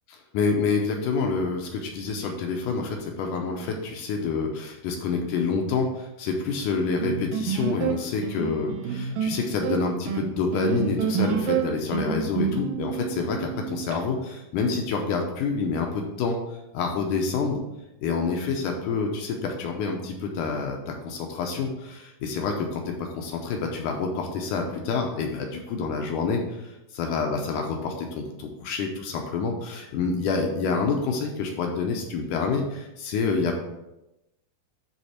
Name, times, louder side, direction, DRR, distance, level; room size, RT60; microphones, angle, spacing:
voice 1, 0.3-17.6 18.0-33.6, left 4 dB, 80° left, 2 dB, 1.9 m, -28 dB
sound 1, 7.0-14.0, right 8 dB, 75° right, 2.2 m, -28 dB
10.5 x 3.6 x 4.3 m, 0.92 s
omnidirectional pair, 4.5 m